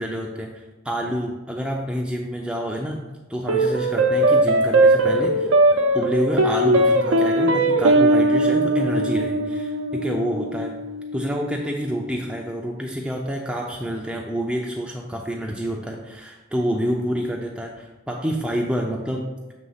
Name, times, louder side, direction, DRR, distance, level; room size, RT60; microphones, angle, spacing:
voice 1, 0.0-3.0 3.3-5.5 5.9-10.7 11.1-19.3, equal, 5° right, -2 dB, 0.4 m, -28 dB
sound 1, 3.5-12.1, right 1 dB, 80° right, 0.7 m, -20 dB
7.5 x 3.3 x 5.6 m, 1.1 s
head